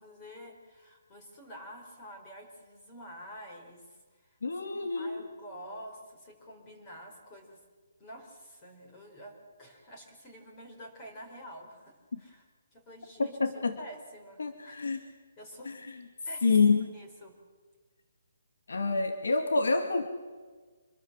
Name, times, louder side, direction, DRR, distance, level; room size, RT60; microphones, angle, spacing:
voice 1, 0.0-4.4 4.7-7.6 8.0-12.4 12.7-15.7 16.2-16.6 16.9-17.3, equal, 15° left, 2 dB, 4.5 m, -48 dB
voice 2, 4.4-5.2 12.1-12.2 13.2-13.8 14.4-15.0 15.7-16.0 16.4-16.9 18.7-20.1, left 4 dB, 80° left, 6 dB, 2.5 m, -27 dB
27.0 x 21.5 x 7.5 m, 1.4 s
hypercardioid pair, 175°, 0 cm